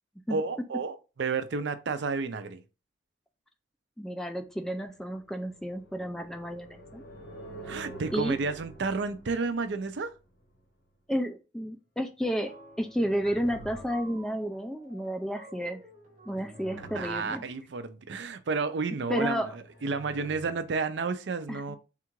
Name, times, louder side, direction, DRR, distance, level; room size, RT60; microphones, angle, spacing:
voice 1, 0.3-2.6 7.6-10.1 16.8-19.5 19.8-21.8, right 4 dB, 70° right, 0.5 m, -31 dB
voice 2, 4.0-7.0 8.1-8.4 11.1-15.8 16.3-17.4 19.1-19.6 21.5-21.8, equal, 5° left, 0.3 m, -32 dB
sound 1, 4.9-10.6 12.6-14.5 16.0-17.6 19.4-20.7, right 1 dB, 60° left, 1.1 m, -48 dB
sound 2, 12.4-17.7, right 1 dB, 35° right, 0.9 m, -52 dB
3.6 x 2.4 x 4.4 m
head